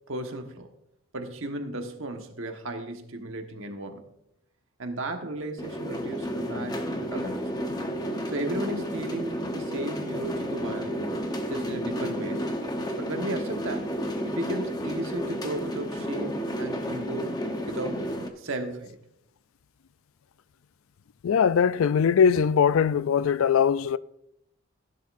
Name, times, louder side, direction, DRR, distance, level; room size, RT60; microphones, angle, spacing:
voice 1, 0.1-0.7 1.1-4.0 4.8-7.4 8.3-11.0 11.5-12.5 13.0-13.9 14.2-19.0, right 1 dB, 65° right, 1.4 m, -35 dB
sound 1, 5.6-18.3, equal, 20° left, 0.9 m, -31 dB
voice 2, 21.2-24.0, left 7 dB, 75° left, 0.4 m, -21 dB
16.0 x 10.5 x 2.6 m
head